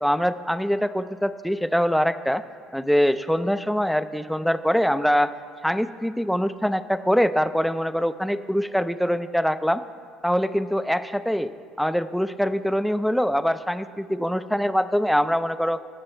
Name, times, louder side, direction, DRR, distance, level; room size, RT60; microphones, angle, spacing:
voice 1, 0.0-2.4 2.7-5.3 5.6-9.8 10.2-11.5 11.8-15.8, equal, ahead, 12 dB, 0.4 m, -23 dB
16.5 x 5.9 x 4.5 m, 2.1 s
supercardioid pair, 80°, 0 cm